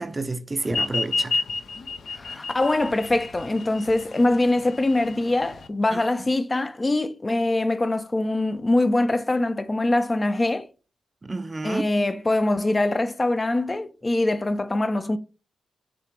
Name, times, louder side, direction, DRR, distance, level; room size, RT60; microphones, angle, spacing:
voice 1, 0.0-1.4 5.9-6.0 11.2-11.9, right 2 dB, 35° right, 0.5 m, -29 dB
sound 1, 0.7-5.7, left 3 dB, 70° left, 0.7 m, -30 dB
voice 2, 2.1-10.7 11.6-15.2, left 2 dB, 30° left, 0.5 m, -23 dB
5.8 x 2.5 x 3.3 m
supercardioid pair, 45°, 0 cm